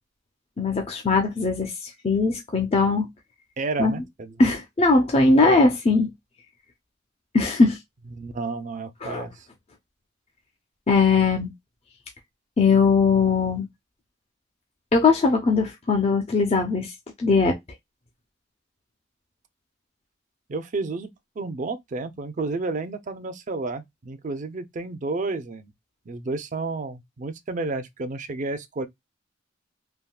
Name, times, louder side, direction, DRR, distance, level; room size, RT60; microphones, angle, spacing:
voice 1, 0.6-3.1 3.8-3.9 4.4-6.1 7.3-7.8 9.0-9.3 10.9-11.5 12.6-13.7 14.9-16.9 17.2-17.6, left 4 dB, 35° left, 0.5 m, -20 dB
voice 2, 3.6-4.3 8.1-9.3 20.5-21.1 21.4-25.7 26.1-28.9, right 3 dB, 40° right, 0.4 m, -31 dB
3.5 x 2.2 x 2.2 m
head